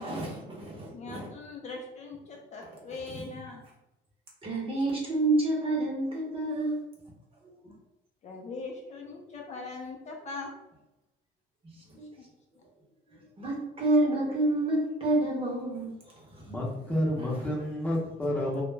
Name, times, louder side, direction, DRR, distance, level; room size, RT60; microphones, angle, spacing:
voice 1, 0.0-1.3 4.4-6.8 7.6-7.7 11.6-11.7 12.0-12.1 13.2-16.5, right 2 dB, 35° right, -3 dB, 0.9 m, -29 dB
voice 2, 0.9-3.6 8.2-10.5 12.2-12.3 12.6-12.7, left 3 dB, 45° left, 1 dB, 0.5 m, -41 dB
voice 3, 16.5-18.6, left 1 dB, 10° left, -3 dB, 0.8 m, -30 dB
2.3 x 2.1 x 3.2 m, 0.93 s
cardioid pair, 110°, 17 cm